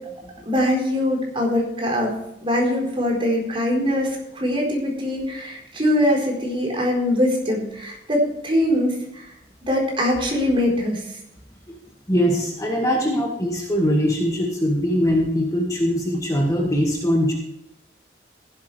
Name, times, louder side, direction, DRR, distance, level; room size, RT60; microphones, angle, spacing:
voice 1, 0.5-2.1 2.4-9.3 9.7-11.0, left 1 dB, 30° right, -1 dB, 4.4 m, -22 dB
voice 2, 12.1-17.3, equal, 20° left, -1 dB, 1.9 m, -21 dB
15.5 x 12.5 x 3.4 m, 0.83 s
head